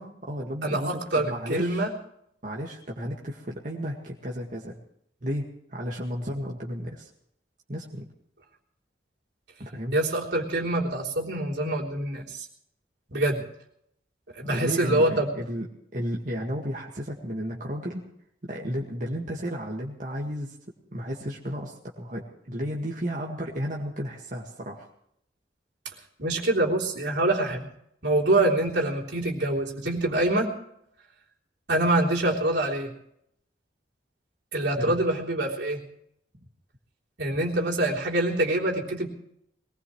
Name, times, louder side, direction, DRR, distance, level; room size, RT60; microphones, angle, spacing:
voice 1, 0.0-1.8 2.4-4.8 5.2-7.1 7.7-8.1 9.6-10.0 14.5-15.7 15.9-18.0 18.4-20.6 20.9-24.9 34.8-35.0, equal, 45° right, -2 dB, 1.9 m, -33 dB
voice 2, 0.6-1.9 9.9-12.5 13.1-13.4 14.4-15.3 26.2-27.6 28.0-30.5 31.7-32.9 34.5-35.8 37.2-39.1, right 1 dB, 80° right, -3 dB, 3.5 m, -25 dB
22.0 x 19.5 x 3.2 m, 0.73 s
head